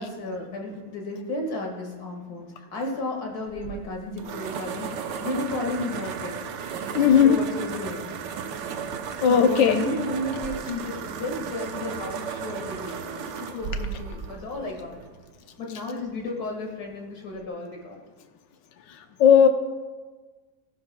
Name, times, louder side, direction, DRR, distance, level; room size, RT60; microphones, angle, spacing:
voice 1, 0.0-4.9 5.2-6.5 6.9-8.1 9.3-15.0 15.6-18.0, left 2 dB, 60° left, 0 dB, 2.3 m, -33 dB
sound 1, 3.5-15.3, right 6 dB, 80° right, 1.4 m, -35 dB
voice 2, 6.9-7.4 9.2-9.8 19.2-19.5, left 8 dB, 85° left, 8 dB, 1.5 m, -16 dB
19.0 x 11.0 x 2.2 m, 1.3 s
omnidirectional pair, 1.9 m